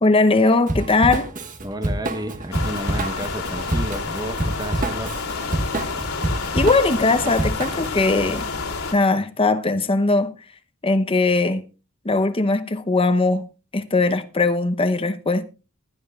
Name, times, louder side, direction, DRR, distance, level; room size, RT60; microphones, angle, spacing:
voice 1, 0.0-1.3 6.5-8.4 8.9-10.3 10.8-11.6 12.0-13.5 13.7-15.4, left 3 dB, 25° left, 0.8 m, -19 dB
Drum kit / Drum, 0.7-8.0, right 1 dB, 40° right, 1.4 m, -27 dB
voice 2, 1.6-5.2, right 1 dB, 20° right, 1.1 m, -31 dB
sound 1, 2.5-8.9, left 4 dB, 85° left, 2.4 m, -29 dB
20.0 x 11.0 x 2.4 m
head